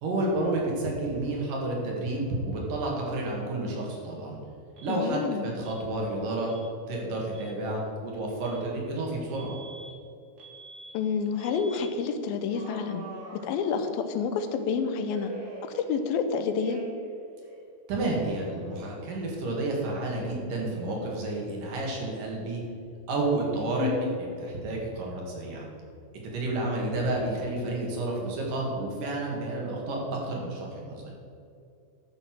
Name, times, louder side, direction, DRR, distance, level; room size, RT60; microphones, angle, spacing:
voice 1, 0.0-4.4 4.8-6.5 6.9-9.6 17.9-22.6 23.1-25.7 26.2-31.2, right 2 dB, 60° right, -2 dB, 3.5 m, -30 dB
Alarm, 4.8-5.0 5.6-5.8 6.5-6.7 7.2-7.5 8.4-8.6 9.3-9.9 10.4-10.9 11.4-11.9 12.5-14.1 15.0-16.2 16.6-17.1 17.4-19.1, right 2 dB, 35° right, 1.8 m, -46 dB
voice 2, 4.9-5.5 10.9-13.0 13.3-15.3 15.6-16.8 23.8-24.2, left 6 dB, 75° left, 8 dB, 2.5 m, -29 dB
13.0 x 7.0 x 6.2 m, 2.4 s
omnidirectional pair, 4.4 m